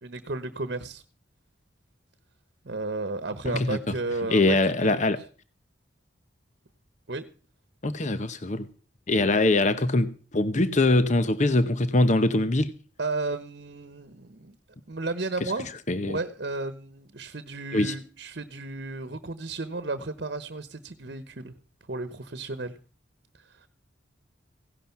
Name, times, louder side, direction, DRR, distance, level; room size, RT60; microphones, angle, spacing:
voice 1, 0.0-1.0 2.6-5.1 7.1-7.2 13.0-14.6 14.9-15.7 16.1-21.5 21.9-22.8 23.4-23.7, right 3 dB, 60° right, 12 dB, 1.1 m, -33 dB
voice 2, 3.4-3.8 4.3-5.2 7.8-8.7 9.1-12.7 15.9-16.2 17.7-17.9, left 2 dB, 40° left, 12 dB, 0.9 m, -23 dB
17.0 x 11.5 x 5.9 m, 0.39 s
head